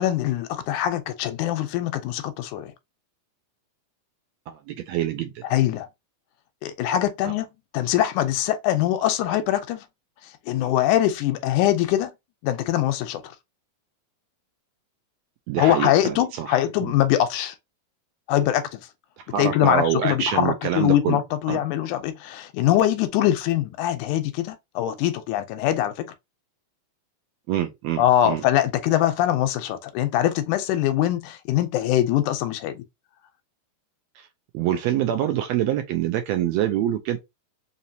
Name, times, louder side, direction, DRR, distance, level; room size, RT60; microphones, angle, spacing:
voice 1, 0.0-2.7 5.5-5.9 6.6-7.5 7.7-9.8 10.5-12.1 12.4-13.2 15.6-17.6 18.3-18.8 19.4-26.1 28.0-32.8, left 12 dB, 85° left, 2.1 m, -23 dB
voice 2, 4.5-5.3 7.2-7.3 15.5-16.9 19.3-21.2 21.5-21.6 27.5-28.4 34.5-37.2, right 11 dB, 80° right, 1.6 m, -25 dB
4.9 x 2.8 x 2.7 m
omnidirectional pair, 3.5 m